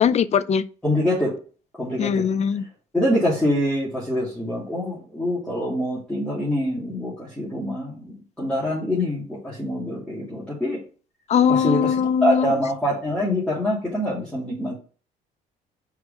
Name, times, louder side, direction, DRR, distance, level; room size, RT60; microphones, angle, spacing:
voice 1, 0.0-0.6 2.0-2.6 11.3-12.5, left 7 dB, 40° left, 0.5 m, -20 dB
voice 2, 0.8-1.3 1.7-2.2 2.9-10.8 11.5-11.9 12.2-14.8, left 1 dB, 5° left, 2.7 m, -25 dB
4.9 x 4.7 x 5.2 m
cardioid pair, 110°, 17 cm